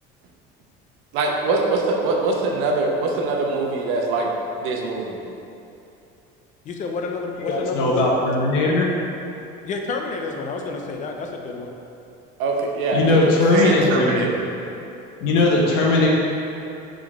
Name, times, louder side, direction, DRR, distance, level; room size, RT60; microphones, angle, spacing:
voice 1, 1.1-4.3 4.6-5.2 12.4-13.2 13.5-14.4, right 3 dB, 75° right, 0 dB, 0.9 m, -23 dB
voice 2, 6.6-8.1 9.7-11.7 13.1-13.2, left 4 dB, 35° left, 3 dB, 0.6 m, -29 dB
voice 3, 7.5-8.9 12.9-14.3 15.2-16.1, left 2 dB, 70° left, -3 dB, 0.9 m, -19 dB
5.3 x 3.8 x 4.8 m, 2.8 s
cardioid pair, 150°, 21 cm